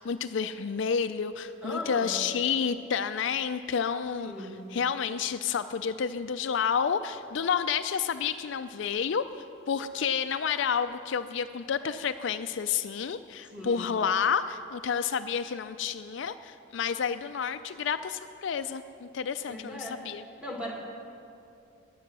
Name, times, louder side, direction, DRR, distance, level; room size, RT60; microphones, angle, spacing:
voice 1, 0.0-9.3 9.7-20.2, left 7 dB, 60° left, 10 dB, 0.4 m, -30 dB
voice 2, 1.6-2.2 4.2-4.6 13.4-13.9 19.5-20.0 20.4-20.7, left 1 dB, 5° right, -1 dB, 2.1 m, -38 dB
15.5 x 10.5 x 6.1 m, 2.6 s
head